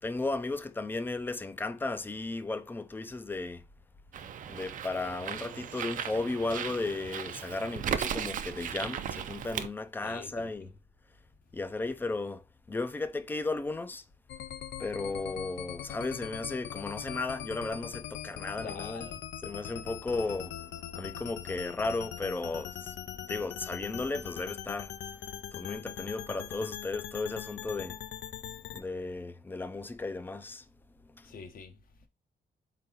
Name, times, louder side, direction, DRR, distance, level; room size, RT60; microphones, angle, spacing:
voice 1, 0.0-3.7 4.5-10.7 11.5-14.0 14.8-19.1 19.4-24.9 25.5-28.0 28.7-30.7 31.0-31.3, left 3 dB, 10° left, 0.4 m, -35 dB
Bird, 4.1-9.7, right 9 dB, 50° right, 0.4 m, -36 dB
voice 2, 10.0-10.7 18.6-19.2 31.2-32.1, left 5 dB, 55° left, 0.9 m, -46 dB
sound 1, 14.3-28.8, left 10 dB, 85° left, 0.5 m, -41 dB
4.7 x 3.8 x 2.8 m
wide cardioid pair, 175°, 18 cm